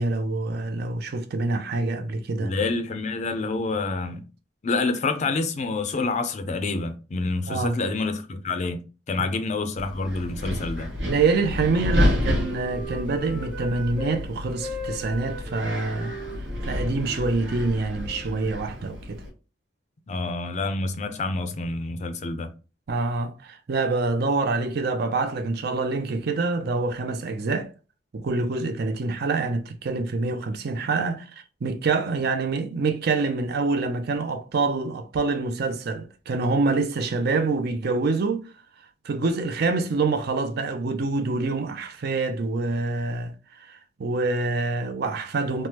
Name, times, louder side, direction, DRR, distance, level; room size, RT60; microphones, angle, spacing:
voice 1, 0.0-2.5 7.5-7.8 11.1-16.1 16.6-19.2 22.9-27.7 28.1-31.3 31.6-38.5 39.0-43.3 43.6-45.7, right 3 dB, 55° right, 0.4 m, -26 dB
voice 2, 2.4-4.2 4.6-8.8 9.1-10.9 20.1-22.5, left 3 dB, 40° left, 0.4 m, -27 dB
Wind, 9.8-19.3, left 1 dB, 80° right, 1.1 m, -30 dB
Wind instrument woodwind instrument, 10.9-14.2 14.5-18.3, left 1 dB, 10° right, 0.8 m, -39 dB
3.3 x 2.0 x 2.8 m
head